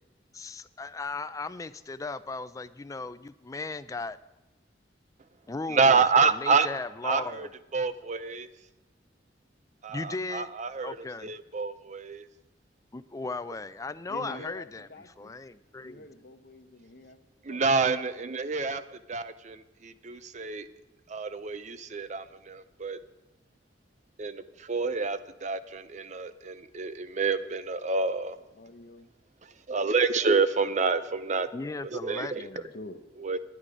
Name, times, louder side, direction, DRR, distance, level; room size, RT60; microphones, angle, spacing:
voice 1, 0.3-4.2 5.5-6.0 6.2-7.5 9.9-10.5 10.8-11.3 12.9-16.1 31.5-32.8, left 3 dB, 20° left, 13 dB, 0.4 m, -37 dB
voice 2, 5.7-6.7 7.0-8.5 9.8-12.3 14.3-14.5 17.4-20.7 21.1-23.0 24.2-28.4 29.4-31.5 31.8-32.5 33.2-33.4, right 4 dB, 40° right, 12 dB, 0.6 m, -28 dB
voice 3, 14.1-15.4 15.8-17.2 17.5-17.6 28.6-29.1 32.3-33.0, left 1 dB, 55° left, 7 dB, 0.9 m, -46 dB
10.5 x 9.9 x 4.9 m, 1.0 s
head